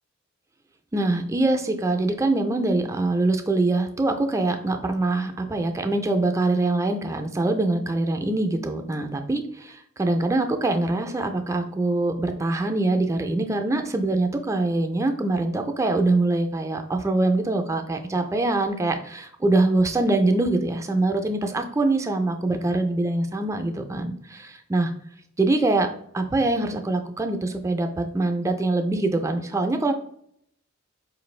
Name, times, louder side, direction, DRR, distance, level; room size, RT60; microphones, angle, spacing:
voice 1, 0.9-24.9 25.4-25.9 26.1-29.9, right 2 dB, 15° right, 5 dB, 0.4 m, -24 dB
4.6 x 2.5 x 3.1 m, 0.69 s
head